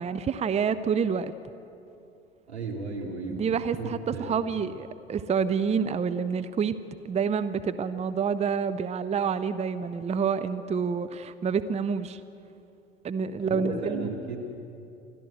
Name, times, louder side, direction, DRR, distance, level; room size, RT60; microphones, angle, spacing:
voice 1, 0.0-1.3 3.0-6.8 7.0-12.2 13.0-14.1, right 6 dB, 20° right, 13 dB, 0.7 m, -28 dB
voice 2, 2.5-3.5 3.8-4.3 13.5-14.4, right 3 dB, 85° right, -1 dB, 3.0 m, -34 dB
28.5 x 12.5 x 8.0 m, 2.7 s
figure-of-eight pair, 70°, 32 cm